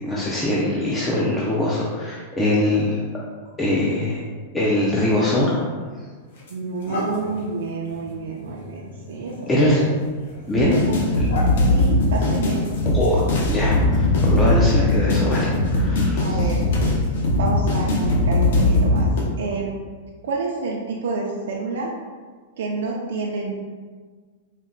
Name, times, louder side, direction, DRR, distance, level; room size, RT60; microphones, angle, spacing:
voice 1, 0.0-3.0 3.6-4.2 4.5-5.5 9.5-9.8 10.5-10.8 12.9-13.2 13.5-16.5, left 1 dB, 10° left, -6 dB, 0.3 m, -22 dB
sound 1, 5.5-5.7 6.3-13.7, left 1 dB, 85° left, 1.0 m, -37 dB
voice 2, 6.5-9.9 10.5-10.9 11.6-12.6 16.2-17.0 17.4-19.1 19.4-19.7 20.2-21.9 22.6-23.5, right 4 dB, 75° right, -2 dB, 0.4 m, -29 dB
sound 2, 10.5-19.2, left 2 dB, 65° left, 0.8 m, -19 dB
4.1 x 2.1 x 3.6 m, 1.5 s
supercardioid pair, 180°, 0 cm